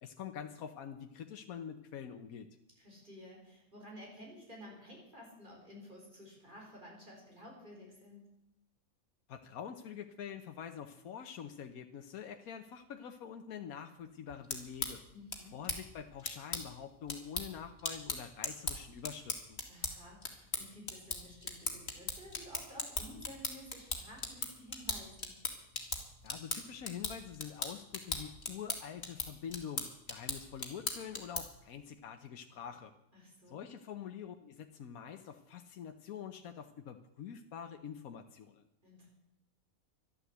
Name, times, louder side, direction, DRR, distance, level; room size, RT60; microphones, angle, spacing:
voice 1, 0.0-2.5 9.3-15.0 15.5-19.6 26.2-32.9 33.5-38.6, left 8 dB, 90° left, 6 dB, 1.3 m, -46 dB
voice 2, 2.8-8.3 15.1-15.6 19.7-25.4 33.1-33.6 38.8-39.1, left 1 dB, 35° right, -2 dB, 5.1 m, -53 dB
sound 1, 14.3-31.7, left 3 dB, 45° left, 2.3 m, -40 dB
13.0 x 11.5 x 8.0 m, 0.83 s
omnidirectional pair, 1.5 m